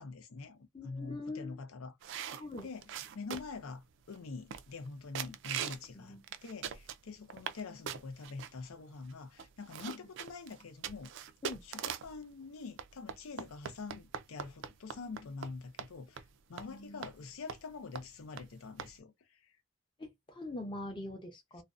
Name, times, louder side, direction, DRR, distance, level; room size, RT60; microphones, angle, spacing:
voice 1, 0.0-0.6 0.8-2.8 3.1-11.1 11.6-16.2 16.5-19.4, left 4 dB, 75° left, 0.5 m, -45 dB
voice 2, 0.7-1.6 2.4-2.7 5.3-5.4 5.9-6.2 11.4-11.6 13.4-13.5 16.7-17.0 20.0-21.6, left 2 dB, 20° left, 0.6 m, -43 dB
sound 1, 2.0-3.6 4.1-4.2 4.5-4.9 5.1-5.9 6.2-7.6 7.9-8.5 9.1-9.2 9.4-12.2 12.8-15.5 15.8-15.9 16.2-16.3 16.6-16.7 17.0-17.1 17.5-17.7 18.0-18.1 18.4-18.5 18.8-18.9, right 8 dB, 55° right, 0.3 m, -41 dB
2.5 x 2.1 x 2.4 m
head